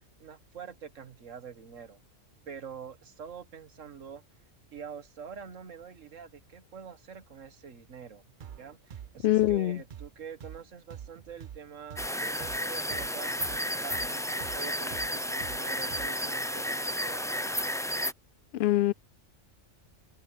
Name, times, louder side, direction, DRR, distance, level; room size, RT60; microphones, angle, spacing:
voice 1, 0.2-2.0 2.5-4.2 4.7-8.2 8.6-17.7, right 7 dB, 75° right, 1.8 m, -46 dB
sound 1, 8.4-16.3, right 9 dB, 50° right, 0.7 m, -46 dB
voice 2, 9.2-9.8 18.5-18.9, left 15 dB, 65° left, 0.7 m, -24 dB
sound 2, 12.0-18.1, equal, 5° left, 0.5 m, -32 dB
omnidirectional pair, 1.3 m